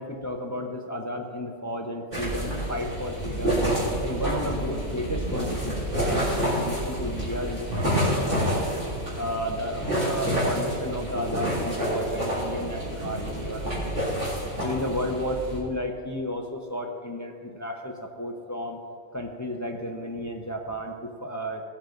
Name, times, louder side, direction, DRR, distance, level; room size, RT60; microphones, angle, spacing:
voice 1, 0.0-3.6 4.0-8.7 9.2-14.1 14.6-18.8 19.1-21.6, left 1 dB, 15° left, 2 dB, 0.7 m, -33 dB
sound 1, 2.1-15.6, equal, 45° right, 4.1 m, -28 dB
18.5 x 8.4 x 3.9 m, 2.2 s
omnidirectional pair, 1.3 m